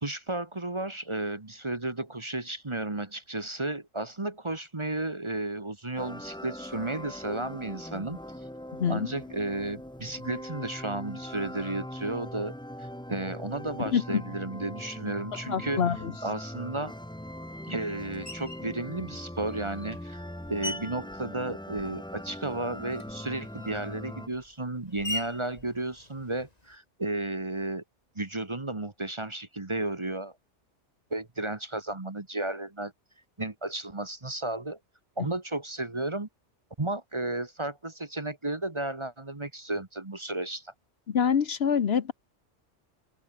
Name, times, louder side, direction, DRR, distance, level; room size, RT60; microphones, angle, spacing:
voice 1, 0.0-8.2 8.9-15.8 16.2-16.9 17.7-20.2 20.5-27.8 28.1-30.3 31.1-32.9 33.4-34.8 35.2-36.3 36.8-40.7, right 2 dB, 25° right, 1.3 m, -33 dB
sound 1, 6.0-24.3, left 1 dB, 5° left, 1.0 m, -41 dB
voice 2, 13.8-14.2 15.5-16.1 41.1-42.1, left 7 dB, 60° left, 1.2 m, -26 dB
Screech, 18.3-18.7 19.5-22.2 22.5-26.8, left 2 dB, 35° left, 3.2 m, -42 dB
omnidirectional pair, 1.2 m